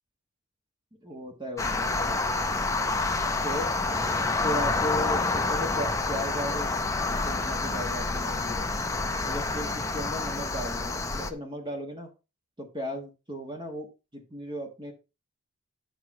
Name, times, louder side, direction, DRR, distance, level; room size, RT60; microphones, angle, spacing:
voice 1, 1.0-2.2 3.4-3.7 4.4-6.7 7.1-8.6 9.2-12.1 12.6-14.9, equal, 20° right, 3 dB, 1.4 m, -36 dB
sound 1, 1.6-11.3, left 3 dB, 15° left, 0.7 m, -28 dB
10.0 x 6.2 x 4.1 m, 0.28 s
head